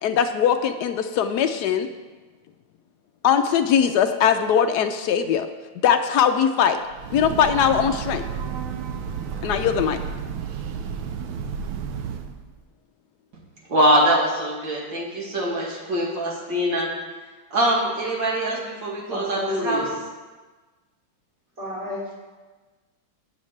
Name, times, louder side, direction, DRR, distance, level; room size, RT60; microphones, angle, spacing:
voice 1, 0.0-1.9 3.2-5.5 5.8-6.8 7.1-8.2 9.4-10.0, left 8 dB, 75° left, 8 dB, 0.9 m, -20 dB
Breathing / Train, 6.8-12.4, right 6 dB, 80° right, 1.5 m, -31 dB
voice 2, 13.7-16.9 17.5-19.9, right 1 dB, 65° right, -3 dB, 2.8 m, -23 dB
voice 3, 19.1-19.9 21.6-22.0, equal, 35° right, -10 dB, 3.1 m, -29 dB
17.5 x 7.3 x 3.3 m, 1.3 s
omnidirectional pair, 2.2 m